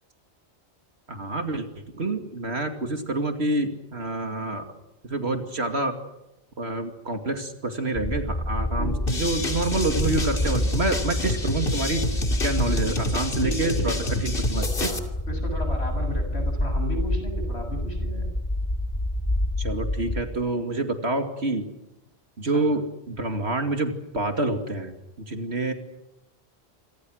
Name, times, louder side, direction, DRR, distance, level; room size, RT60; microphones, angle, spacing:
voice 1, 1.1-1.7 1.9-4.7 5.0-5.9 6.6-12.1 12.4-13.9 14.2-14.9 19.6-21.7 22.4-24.9 25.3-25.7, right 2 dB, 75° right, 6 dB, 2.7 m, -27 dB
sound 1, 7.9-20.2, left 1 dB, 25° left, 2.5 m, -28 dB
sound 2, 9.1-15.0, left 2 dB, 55° left, 2.9 m, -29 dB
voice 2, 13.4-14.1 14.8-18.3 22.5-22.7, equal, 75° left, 5 dB, 7.9 m, -34 dB
28.0 x 25.5 x 6.4 m, 0.92 s
omnidirectional pair, 1.1 m